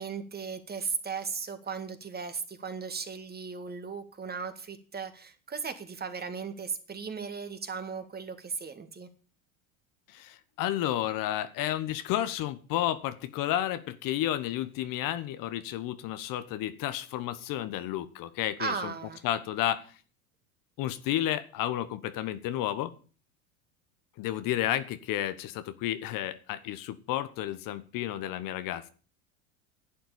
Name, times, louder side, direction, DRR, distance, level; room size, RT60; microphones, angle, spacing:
voice 1, 0.0-9.1 18.6-19.2, right 5 dB, 25° right, 9 dB, 2.0 m, -36 dB
voice 2, 10.1-18.9 19.2-20.0 20.8-22.9 24.2-28.9, left 13 dB, 50° left, 12 dB, 1.3 m, -31 dB
11.5 x 7.9 x 8.7 m, 0.39 s
hypercardioid pair, 90°, 41 cm